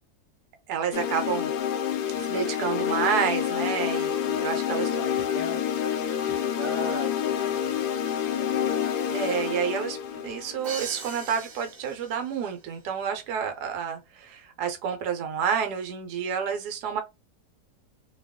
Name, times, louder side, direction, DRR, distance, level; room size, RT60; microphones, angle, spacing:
voice 1, 0.7-1.5 2.1-4.9 9.1-10.0 10.2-17.0, right 7 dB, 75° right, 1.3 m, -29 dB
sound 1, 0.9-11.0, left 9 dB, 80° left, 1.1 m, -28 dB
voice 2, 4.5-8.7, equal, 10° right, 0.8 m, -40 dB
Crash cymbal, 10.6-12.5, right 4 dB, 55° right, 0.9 m, -40 dB
2.9 x 2.3 x 3.5 m
omnidirectional pair, 1.7 m